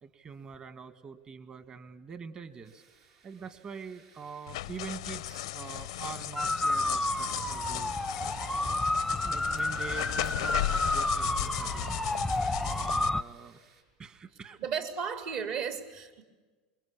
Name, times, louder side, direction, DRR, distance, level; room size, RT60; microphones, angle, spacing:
voice 1, 0.0-2.8 3.2-8.0 9.2-13.6 14.0-14.6, right 5 dB, 30° right, 11 dB, 2.0 m, -45 dB
sound 1, 2.6-13.8, right 5 dB, 70° right, 6.3 m, -61 dB
sound 2, 4.5-13.1, left 15 dB, 85° left, 0.7 m, -36 dB
sound 3, 6.4-13.2, left 1 dB, ahead, 0.8 m, -30 dB
voice 2, 14.6-16.2, right 7 dB, 55° right, 7 dB, 3.8 m, -34 dB
27.0 x 22.5 x 8.7 m, 1.3 s
supercardioid pair, 120°, 3 cm